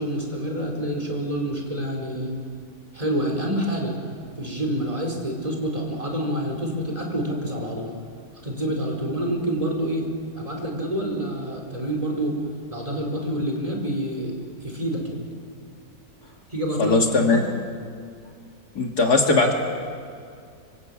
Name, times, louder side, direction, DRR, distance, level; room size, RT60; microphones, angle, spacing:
voice 1, 0.0-2.3 2.9-3.9 4.4-7.9 8.4-10.1 10.3-12.4 12.7-15.3 16.5-17.5, right 1 dB, 20° right, 1 dB, 4.4 m, -27 dB
voice 2, 16.8-17.4 18.8-19.5, left 3 dB, 60° left, 2 dB, 2.6 m, -19 dB
25.0 x 25.0 x 8.7 m, 2.3 s
omnidirectional pair, 1.9 m